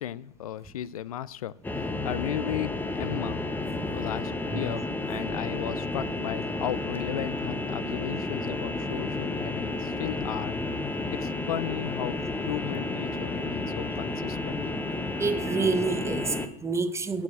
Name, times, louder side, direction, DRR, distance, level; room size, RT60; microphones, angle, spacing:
voice 1, 0.0-3.5 3.9-10.6 11.1-14.6, left 12 dB, 90° left, 0.4 m, -35 dB
sound 1, 1.6-16.5, left 2 dB, 10° left, 0.9 m, -31 dB
voice 2, 15.2-17.2, right 4 dB, 15° right, 0.8 m, -28 dB
7.3 x 6.3 x 7.9 m
hypercardioid pair, 95°, 18 cm